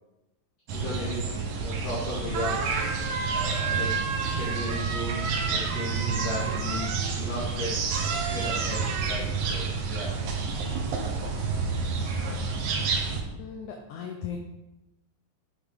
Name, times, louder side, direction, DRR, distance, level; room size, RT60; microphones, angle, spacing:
voice 1, 0.7-1.4 1.6-7.8 8.3-10.2, left 1 dB, 55° left, -9 dB, 2.9 m, -36 dB
sound 1, 0.7-13.2, right 4 dB, 65° right, 2.4 m, -30 dB
sound 2, 2.0-2.1 2.3-7.2 7.9-9.2, right 5 dB, 85° right, 2.7 m, -32 dB
voice 2, 13.4-14.4, left 7 dB, 75° left, 3 dB, 2.0 m, -37 dB
8.7 x 8.0 x 3.7 m, 1.0 s
omnidirectional pair, 3.9 m